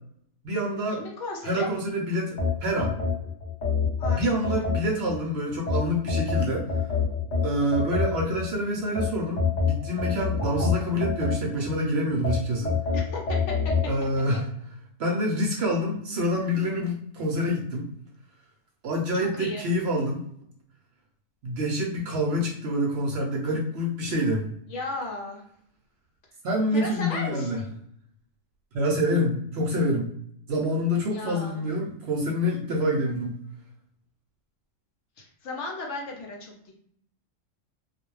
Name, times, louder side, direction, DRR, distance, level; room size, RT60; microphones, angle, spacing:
voice 1, 0.4-1.0 1.4-3.0 4.1-6.7 7.4-12.8 13.9-14.5 15.0-17.9 18.8-20.2 21.4-24.5 26.4-27.6 28.7-30.1 30.5-33.3, equal, 65° right, 0 dB, 0.7 m, -27 dB
voice 2, 1.0-1.7 4.0-4.2 4.5-4.6 12.9-13.5 19.2-19.6 24.7-25.4 26.7-27.7 31.1-31.6 35.2-36.7, left 2 dB, 65° left, 0 dB, 0.9 m, -35 dB
sound 1, 2.4-5.2 5.7-8.4 9.0-11.7 12.2-13.9, left 4 dB, 45° left, 0.7 m, -27 dB
2.4 x 2.1 x 3.0 m, 0.67 s
omnidirectional pair, 1.4 m